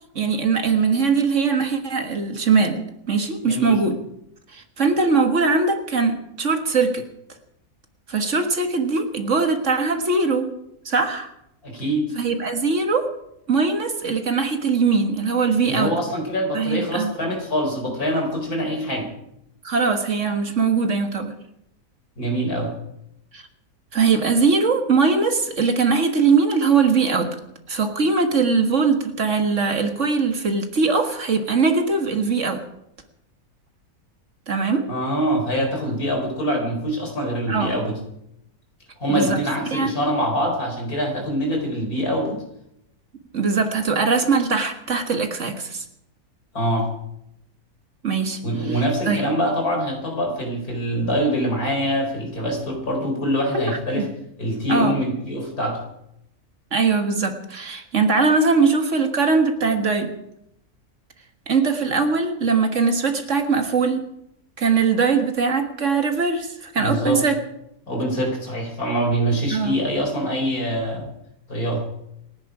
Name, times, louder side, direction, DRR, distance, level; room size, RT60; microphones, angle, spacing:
voice 1, 0.2-4.0 4.5-7.0 8.1-10.5 10.9-11.3 12.2-13.1 13.5-15.9 16.5-17.1 19.6-21.4 23.3-23.4 23.9-27.3 27.7-32.6 34.5-34.9 37.5-37.9 39.1-39.4 39.7-39.9 43.3-45.8 48.0-49.2 53.5-54.1 54.7-55.0 56.7-60.1 61.5-64.0 64.6-67.4 69.5-69.8, right 4 dB, 55° right, 6 dB, 1.9 m, -21 dB
voice 2, 3.4-3.8 11.6-12.1 15.6-19.1 22.2-22.7 34.9-38.0 39.0-42.4 46.5-46.9 48.4-54.1 54.4-55.8 66.8-67.2 67.9-71.1 71.5-71.8, equal, 75° left, 2 dB, 4.8 m, -24 dB
28.0 x 10.5 x 4.9 m, 0.78 s
omnidirectional pair, 1.6 m